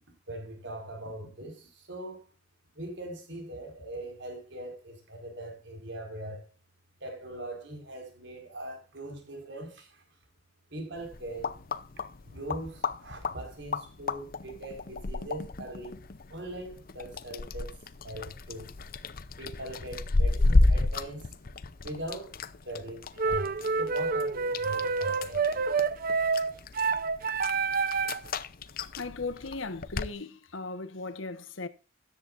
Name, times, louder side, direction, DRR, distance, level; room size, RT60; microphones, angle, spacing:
voice 1, 0.3-2.3 2.8-6.4 7.0-10.0 10.7-11.5 12.2-16.0 16.3-17.7 18.0-18.7 19.4-21.3 21.8-22.3 22.6-23.5 23.8-25.6, right 1 dB, 60° right, 5.0 m, -41 dB
sound 1, 11.0-30.1, left 2 dB, 50° left, 0.6 m, -32 dB
sound 2, 23.2-28.3, right 4 dB, 45° right, 0.7 m, -28 dB
voice 2, 28.8-31.7, left 3 dB, 85° left, 1.3 m, -37 dB
13.5 x 11.0 x 2.6 m
head